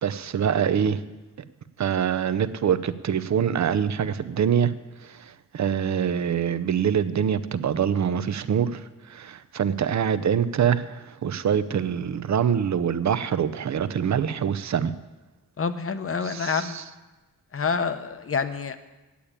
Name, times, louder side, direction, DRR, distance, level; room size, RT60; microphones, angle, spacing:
voice 1, 0.0-1.0 1.8-4.7 5.0-14.9 16.3-16.8, right 8 dB, 50° right, 14 dB, 0.7 m, -25 dB
voice 2, 15.6-16.8 17.5-18.8, left 5 dB, 40° left, 11 dB, 0.9 m, -27 dB
8.7 x 8.6 x 8.7 m, 1.1 s
cardioid pair, 75°, 35 cm